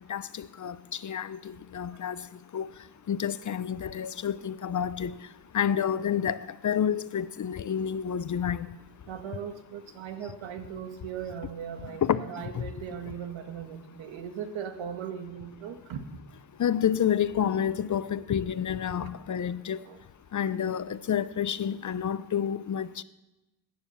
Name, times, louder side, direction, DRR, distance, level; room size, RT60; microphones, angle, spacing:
voice 1, 0.1-1.4 1.7-2.2 2.5-2.7 3.1-5.2 5.5-8.7 12.0-12.2 12.5-12.6 16.6-19.8 20.3-23.0, left 8 dB, 40° left, 0.7 m, -29 dB
voice 2, 9.1-16.0 19.0-19.1 19.8-20.0, right 8 dB, 75° right, 1.6 m, -38 dB
15.0 x 9.7 x 7.0 m
supercardioid pair, 70°, 47 cm